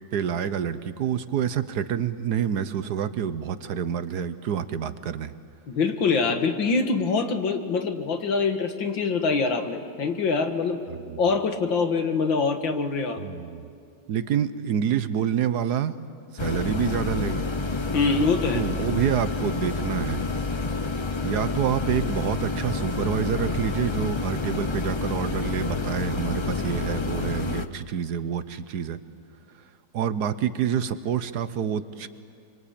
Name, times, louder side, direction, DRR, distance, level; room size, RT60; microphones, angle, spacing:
voice 1, 0.1-5.3 11.1-11.2 13.2-13.7 14.1-15.9 16.3-17.5 18.5-20.2 21.2-29.0 29.9-32.1, right 8 dB, 65° right, 12 dB, 1.3 m, -27 dB
voice 2, 5.7-10.8 11.2-13.2 17.9-18.6, left 4 dB, 85° left, 6 dB, 2.4 m, -24 dB
sound 1, 16.4-27.7, left 3 dB, 40° left, 0.3 m, -28 dB
25.5 x 24.5 x 8.7 m, 2.4 s
omnidirectional pair, 2.0 m